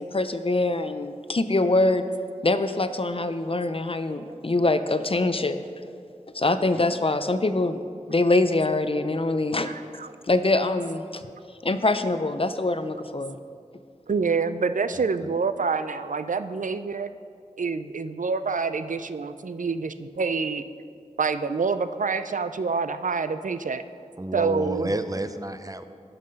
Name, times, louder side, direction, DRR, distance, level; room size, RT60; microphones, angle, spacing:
voice 1, 0.0-2.0 2.4-5.6 6.3-7.8 8.1-9.7 10.3-11.2 11.6-13.3, left 2 dB, 45° left, 11 dB, 0.5 m, -24 dB
voice 2, 9.7-10.1 14.1-17.1 17.6-20.6 21.2-23.8 24.3-24.9, right 4 dB, 80° right, 12 dB, 0.4 m, -27 dB
voice 3, 24.2-25.9, right 1 dB, 25° right, 10 dB, 0.5 m, -30 dB
12.0 x 5.7 x 5.2 m, 2.3 s
wide cardioid pair, 40°, 13 cm